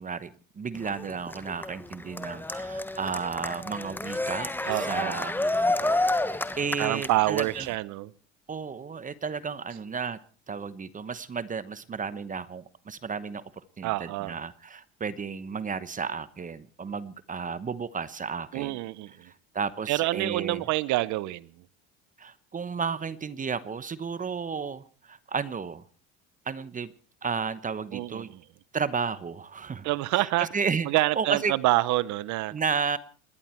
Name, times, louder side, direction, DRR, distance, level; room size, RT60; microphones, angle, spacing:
voice 1, 0.0-7.7 8.5-10.2 10.5-13.4 13.8-18.8 19.2-20.6 22.2-25.8 26.4-26.9 27.2-28.3 28.7-29.9 30.1-30.9 31.2-31.5 32.5-33.0, right 5 dB, 25° right, 16 dB, 1.1 m, -33 dB
Cheering, 0.7-7.7, left 2 dB, 5° left, 1.2 m, -30 dB
voice 2, 4.6-5.2 6.8-8.1 13.8-14.4 18.5-19.3 19.9-21.7 27.9-28.4 29.8-30.5 30.8-32.5, right 18 dB, 65° right, 19 dB, 0.9 m, -27 dB
28.5 x 11.0 x 4.5 m, 0.40 s
supercardioid pair, 100°, 32 cm